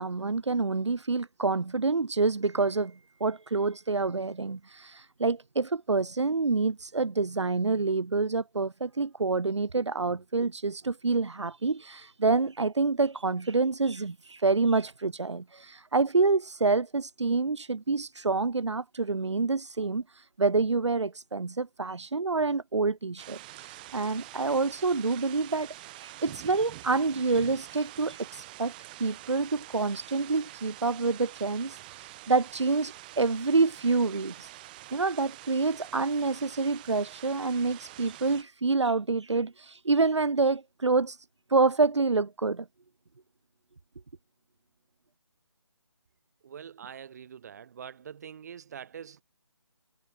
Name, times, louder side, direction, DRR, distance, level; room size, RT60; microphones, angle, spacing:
voice 1, 0.0-28.7 29.0-34.5 34.9-42.7, right 3 dB, 70° right, 2.5 m, -27 dB
sound 1, 23.2-38.4, right 18 dB, 20° right, 2.0 m, -46 dB
voice 2, 46.4-49.2, right 8 dB, 35° right, 2.6 m, -44 dB
figure-of-eight pair, 160°, 15 cm